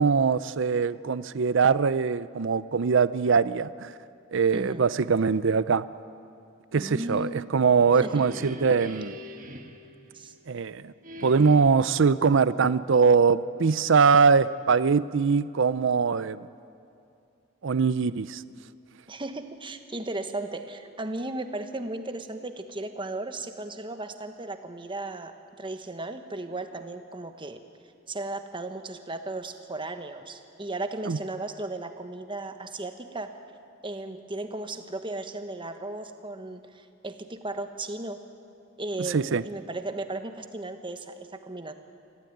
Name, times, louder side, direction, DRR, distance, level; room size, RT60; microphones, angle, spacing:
voice 1, 0.0-3.9 4.3-5.8 6.7-9.1 10.5-10.9 11.2-16.5 17.6-18.4 31.1-31.2 39.1-39.4, right 5 dB, 65° right, 16 dB, 0.5 m, -22 dB
voice 2, 4.5-4.9 6.8-7.6 8.0-8.3 10.1-10.3 19.1-27.6 28.1-33.4 33.8-38.2 38.8-41.7, right 2 dB, 25° right, 7 dB, 1.3 m, -35 dB
sound 1, 7.6-10.6 11.0-12.0, equal, 40° right, 1.8 m, -43 dB
25.0 x 15.5 x 9.3 m, 2.5 s
head